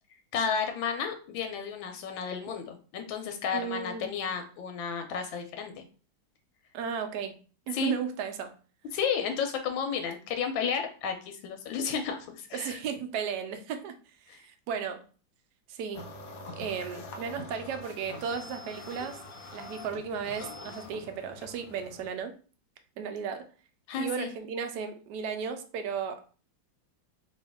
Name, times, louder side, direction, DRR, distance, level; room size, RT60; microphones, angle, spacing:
voice 1, 0.3-5.8 7.7-8.0 8.9-12.8 14.3-14.4 23.9-24.3, left 6 dB, 90° left, 6 dB, 1.4 m, -32 dB
voice 2, 3.5-4.1 6.7-7.4 7.7-8.5 12.5-14.0 14.4-15.0 15.7-16.0 16.5-19.2 19.5-22.3 23.0-23.5 24.0-26.2, right 6 dB, 75° right, 7 dB, 1.0 m, -35 dB
sound 1, 15.9-22.1, left 2 dB, 70° left, 0.8 m, -44 dB
3.0 x 2.7 x 3.4 m, 0.38 s
omnidirectional pair, 2.1 m